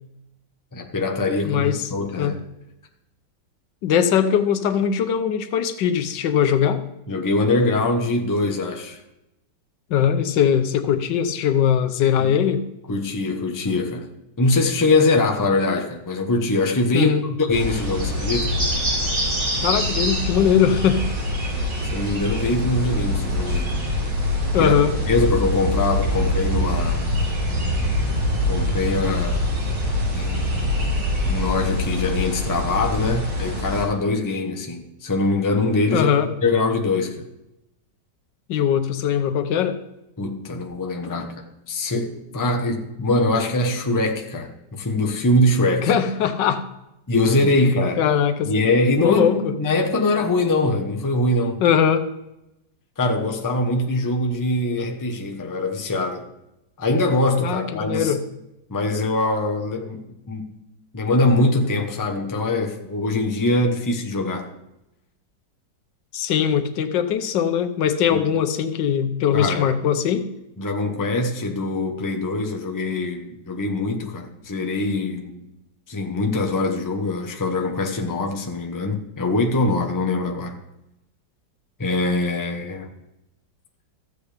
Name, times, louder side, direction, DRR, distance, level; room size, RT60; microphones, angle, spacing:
voice 1, 0.7-2.4 7.1-9.0 12.2-12.3 12.9-14.1 14.4-18.6 21.9-23.7 24.6-24.8 25.1-27.1 28.5-29.4 30.1-30.9 31.2-36.1 36.4-37.2 40.2-45.9 47.1-48.0 48.4-51.6 53.0-56.3 56.8-58.1 58.7-60.4 60.9-64.5 68.1-68.2 69.3-69.7 70.6-75.5 75.9-80.5 81.8-82.9, left 2 dB, 15° left, 3 dB, 0.7 m, -23 dB
voice 2, 1.4-1.9 2.2-2.3 3.8-6.8 9.9-12.6 16.9-17.2 19.6-21.1 24.5-24.9 35.9-36.3 38.5-39.8 45.8-46.6 47.4-47.5 48.0-48.5 49.0-49.5 51.6-52.1 57.4-58.2 66.1-70.3, left 8 dB, 80° left, 9 dB, 1.4 m, -20 dB
sound 1, 17.5-33.8, left 1 dB, 90° right, 5.5 m, -24 dB
14.5 x 8.2 x 3.4 m, 0.90 s
omnidirectional pair, 1.9 m